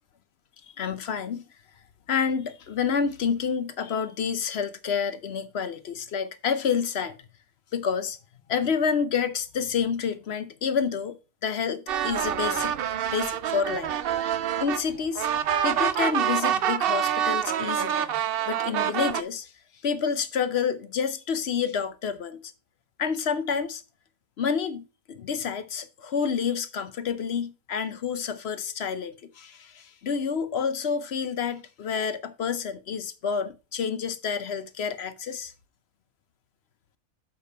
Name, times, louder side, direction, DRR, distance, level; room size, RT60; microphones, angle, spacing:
voice 1, 0.8-1.4 2.1-7.2 7.7-8.2 8.5-11.2 11.4-12.7 13.1-13.9 14.6-15.3 15.6-18.1 18.5-19.5 19.8-22.5 23.0-23.8 24.4-35.5, left 6 dB, 55° left, 0.9 m, -28 dB
sound 1, 11.9-19.2, right 10 dB, 60° right, 0.6 m, -26 dB
6.9 x 5.0 x 5.4 m
omnidirectional pair, 1.4 m